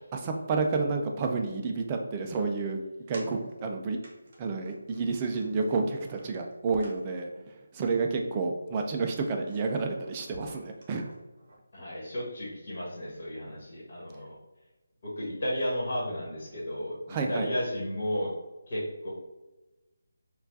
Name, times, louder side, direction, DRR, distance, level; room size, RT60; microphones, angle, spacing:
voice 1, 0.1-2.8 3.1-4.0 4.4-11.1 17.1-17.5, right 4 dB, 20° right, 3 dB, 0.3 m, -30 dB
sound 1, 3.1-3.7 4.0-4.4 4.6-7.3 7.8-8.2 8.4-8.7 9.0-11.6, right 1 dB, 40° right, 0.9 m, -50 dB
voice 2, 11.7-14.4 15.2-18.3 18.7-19.1, equal, 45° left, -6 dB, 1.4 m, -33 dB
4.4 x 2.3 x 2.6 m, 1.1 s
figure-of-eight pair, 170°, 0 cm